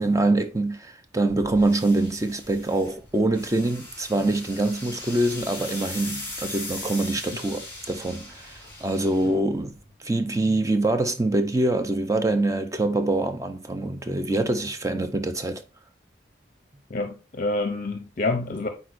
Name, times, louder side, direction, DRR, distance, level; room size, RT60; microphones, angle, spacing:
voice 1, 0.0-15.6, right 2 dB, 15° right, 0.6 m, -25 dB
sound 1, 1.3-9.9, left 2 dB, 10° left, 3.1 m, -39 dB
voice 2, 16.9-18.7, left 2 dB, 45° left, 0.6 m, -27 dB
9.0 x 4.2 x 2.5 m
head